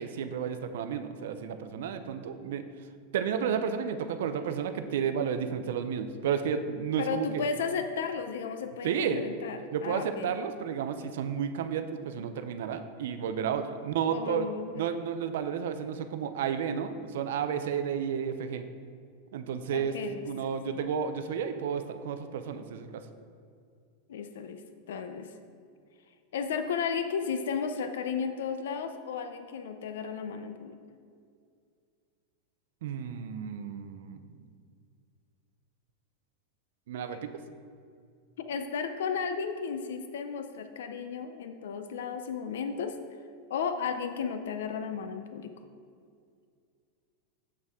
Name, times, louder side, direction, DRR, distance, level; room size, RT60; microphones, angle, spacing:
voice 1, 0.0-2.6 3.1-7.5 8.8-9.2 9.7-14.5 14.8-18.6 19.3-20.0 20.2-23.0 32.8-34.2 36.9-37.3, right 7 dB, 65° right, 9 dB, 0.4 m, -32 dB
voice 2, 7.0-10.4 14.0-14.7 19.7-20.3 24.1-24.6 24.9-25.3 26.3-30.8 38.4-43.0 43.5-45.5, left 6 dB, 85° left, 8 dB, 0.5 m, -34 dB
7.4 x 6.6 x 3.6 m, 2.3 s
supercardioid pair, 180°, 0 cm